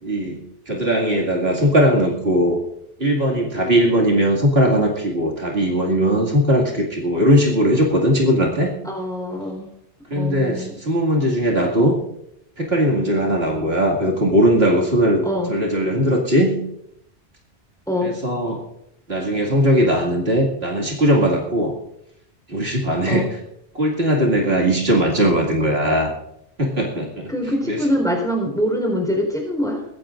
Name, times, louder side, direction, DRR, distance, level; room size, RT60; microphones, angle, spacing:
voice 1, 0.0-2.6 3.0-8.8 10.1-12.0 12.6-15.2 15.5-16.6 18.0-18.6 19.1-21.8 22.5-23.3 23.7-26.1 26.6-27.3 27.7-27.8, equal, 55° right, -1 dB, 2.6 m, -19 dB
voice 2, 8.8-9.7 10.1-10.8 15.2-15.5 17.9-18.1 23.1-23.3 27.3-29.9, equal, 5° left, 1 dB, 4.1 m, -24 dB
22.0 x 15.0 x 2.6 m, 0.77 s
omnidirectional pair, 1.2 m